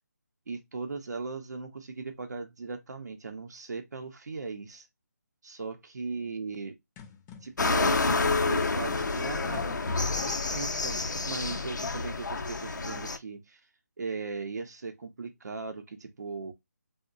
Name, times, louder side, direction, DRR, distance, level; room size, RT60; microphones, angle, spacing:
voice 1, 0.5-4.9 5.4-6.8 7.4-13.7 14.0-16.5, right 4 dB, 70° right, 0.6 m, -38 dB
sound 1, 7.0-12.1, left 7 dB, 15° left, 0.5 m, -50 dB
sound 2, 7.6-13.2, left 3 dB, 80° left, 0.5 m, -29 dB
3.8 x 2.1 x 2.5 m
figure-of-eight pair, 155°, 10 cm